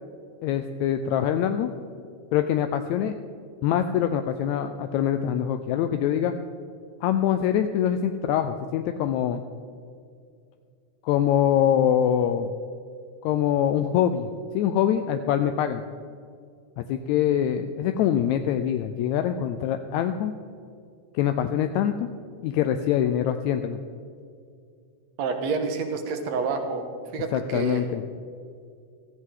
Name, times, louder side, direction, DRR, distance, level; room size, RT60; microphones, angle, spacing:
voice 1, 0.4-1.7 2.3-3.2 3.6-6.3 7.0-9.4 11.0-12.5 13.2-14.3 14.5-15.8 16.8-20.3 21.1-22.1 22.4-23.8 27.3-28.0, left 10 dB, 80° left, 8 dB, 1.8 m, -24 dB
voice 2, 25.2-27.9, right 4 dB, 70° right, 6 dB, 2.2 m, -28 dB
16.0 x 14.0 x 3.8 m, 2.3 s
omnidirectional pair, 3.4 m